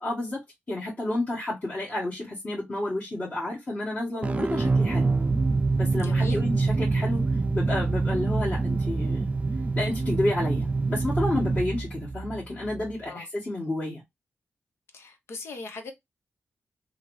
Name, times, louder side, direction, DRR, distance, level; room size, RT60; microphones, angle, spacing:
voice 1, 0.0-0.4 0.7-5.1 5.8-7.2 7.5-9.3 9.8-14.0, left 1 dB, 35° left, 1.3 m, -30 dB
sound 1, 4.2-12.9, right 3 dB, 30° right, 0.4 m, -26 dB
voice 2, 6.0-6.4 13.1-13.3 14.9-15.9, left 3 dB, 85° left, 0.8 m, -39 dB
2.8 x 2.6 x 3.0 m
wide cardioid pair, 90°, 4 cm